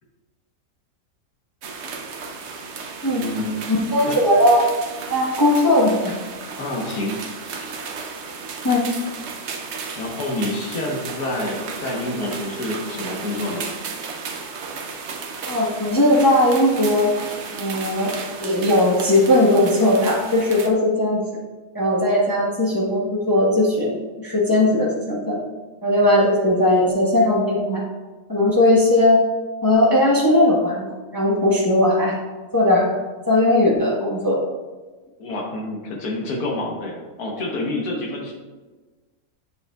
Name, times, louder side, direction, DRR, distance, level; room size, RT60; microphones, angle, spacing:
sound 1, 1.6-20.7, right 5 dB, 60° right, 0.8 m, -34 dB
voice 1, 3.1-3.6 4.1-4.2 6.6-7.3 7.6-7.7 9.9-13.7 35.2-38.3, left 1 dB, 85° left, -1 dB, 1.7 m, -28 dB
voice 2, 3.7-4.7 5.1-6.2 8.6-8.9 15.5-17.1 17.5-18.1 18.4-21.2 21.7-25.4 25.8-27.8 28.3-29.2 29.6-30.9 31.1-32.2 32.5-33.0 33.3-34.4, left 1 dB, 15° left, -4 dB, 1.0 m, -18 dB
7.8 x 6.8 x 2.3 m, 1.3 s
omnidirectional pair, 1.6 m